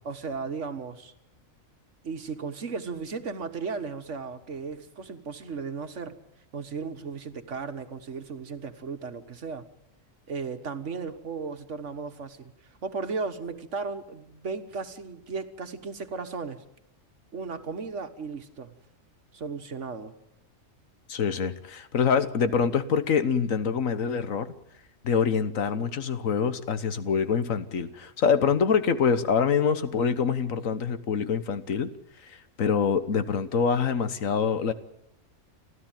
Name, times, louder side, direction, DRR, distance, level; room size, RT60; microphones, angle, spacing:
voice 1, 0.0-1.1 2.0-6.2 6.5-9.7 10.3-12.5 12.8-16.6 17.3-18.7 19.3-20.1, right 4 dB, 65° right, 8 dB, 1.7 m, -35 dB
voice 2, 21.1-24.5 25.0-31.9 32.3-34.7, left 6 dB, 80° left, 12 dB, 1.5 m, -25 dB
30.0 x 13.0 x 9.1 m, 0.80 s
omnidirectional pair, 1.4 m